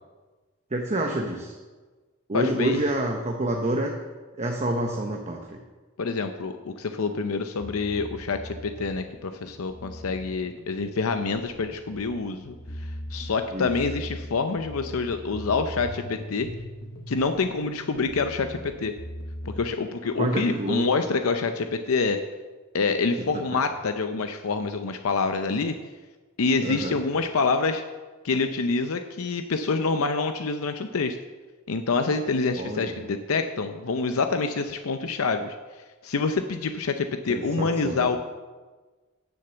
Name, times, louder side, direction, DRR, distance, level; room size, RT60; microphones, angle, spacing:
voice 1, 0.7-1.5 2.3-3.9 4.4-5.6 13.5-13.7 20.2-20.8 26.6-27.0 32.6-32.9 37.3-38.2, right 1 dB, 30° right, 2 dB, 0.9 m, -28 dB
voice 2, 2.3-2.8 6.0-16.5 17.1-18.9 19.6-22.2 22.7-25.8 26.4-27.8 28.2-31.2 31.7-35.6 36.0-38.2, left 4 dB, 85° left, 7 dB, 0.6 m, -26 dB
sound 1, 7.6-19.7, left 1 dB, 55° left, 0.9 m, -40 dB
10.0 x 6.8 x 6.9 m, 1.3 s
head